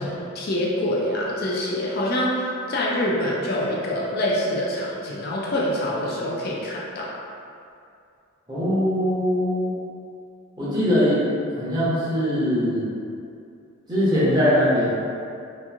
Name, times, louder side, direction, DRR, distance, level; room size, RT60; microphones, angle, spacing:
voice 1, 0.0-7.1, left 1 dB, 45° left, -4 dB, 0.3 m, -25 dB
voice 2, 8.5-9.7 10.6-12.8 13.9-14.9, equal, 20° right, -11 dB, 0.8 m, -21 dB
2.9 x 2.5 x 2.4 m, 2.5 s
head